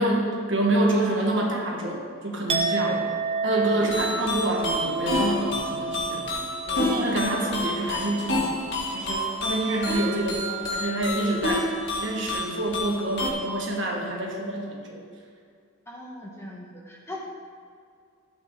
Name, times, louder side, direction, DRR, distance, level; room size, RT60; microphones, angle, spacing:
voice 1, 0.0-3.0 3.4-6.3 6.8-8.5 8.9-11.7 12.0-15.0, right 1 dB, 60° right, -1 dB, 1.7 m, -27 dB
Chink clink, 2.5-8.4 8.7-9.1, right 4 dB, 25° right, 0.7 m, -31 dB
sound 1, 3.8-13.3, left 1 dB, 55° left, 1.9 m, -29 dB
voice 2, 15.9-17.2, equal, 10° left, -3 dB, 1.4 m, -39 dB
12.5 x 8.2 x 3.9 m, 2.2 s
head